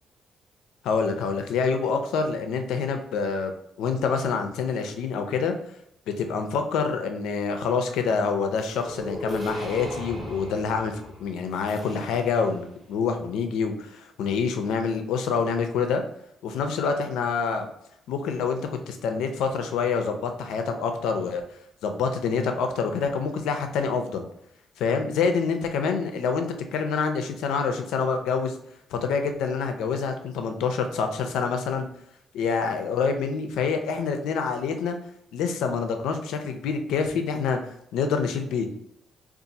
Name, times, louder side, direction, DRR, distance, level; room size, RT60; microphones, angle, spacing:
voice 1, 0.8-3.5 3.8-5.5 6.2-16.0 16.4-17.7 18.1-21.4 21.8-24.2 24.8-28.6 28.9-31.9 32.3-35.0 35.3-37.6 37.9-38.7, left 5 dB, 85° left, 6 dB, 0.5 m, -26 dB
sound 1, 8.6-12.6, equal, 20° right, 1.1 m, -37 dB
2.6 x 2.4 x 4.0 m, 0.73 s
cardioid pair, 90°, 0 cm